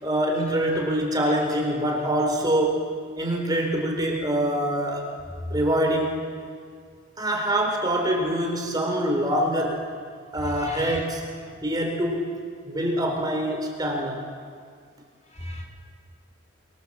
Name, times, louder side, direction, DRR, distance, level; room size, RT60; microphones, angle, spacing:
voice 1, 0.0-2.9 3.2-5.1 5.5-6.2 7.2-9.9 10.3-11.3 11.6-12.4 12.7-14.3, right 1 dB, 20° right, 1 dB, 4.0 m, -25 dB
voice 2, 10.4-11.0 15.3-15.6, left 1 dB, 35° left, 1 dB, 5.1 m, -35 dB
28.5 x 26.0 x 7.5 m, 2.1 s
head